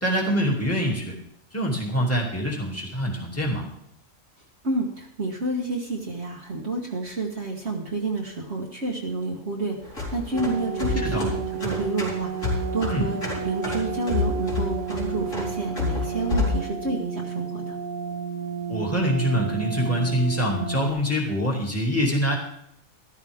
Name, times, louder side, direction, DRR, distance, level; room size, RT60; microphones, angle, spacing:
voice 1, 0.0-1.1 1.5-3.7 11.0-11.3 12.9-13.1 18.7-22.4, equal, 10° left, -3 dB, 2.6 m, -25 dB
voice 2, 4.6-13.2 13.4-17.8, right 2 dB, 60° right, -1 dB, 1.7 m, -29 dB
sound 1, 9.8-16.6, left 4 dB, 85° left, 4.2 m, -29 dB
sound 2, 10.3-20.9, right 6 dB, 80° right, 1.3 m, -32 dB
13.5 x 13.0 x 3.6 m, 0.74 s
omnidirectional pair, 1.3 m